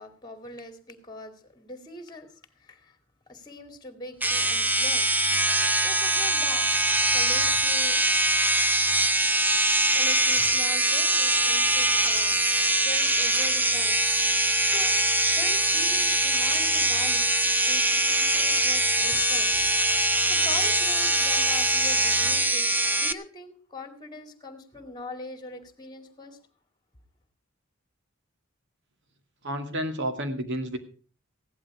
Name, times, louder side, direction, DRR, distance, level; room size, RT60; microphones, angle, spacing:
voice 1, 0.0-3.0 3.3-6.7 7.1-8.0 9.3-9.6 9.9-12.4 12.8-14.0 14.6-15.0 15.4-17.3 17.6-26.4, left 2 dB, 20° left, 8 dB, 2.3 m, -42 dB
sound 1, 4.2-23.1, right 1 dB, 10° right, 0.7 m, -23 dB
voice 2, 29.4-30.8, equal, 60° right, 7 dB, 2.2 m, -30 dB
16.5 x 11.5 x 4.9 m, 0.39 s
head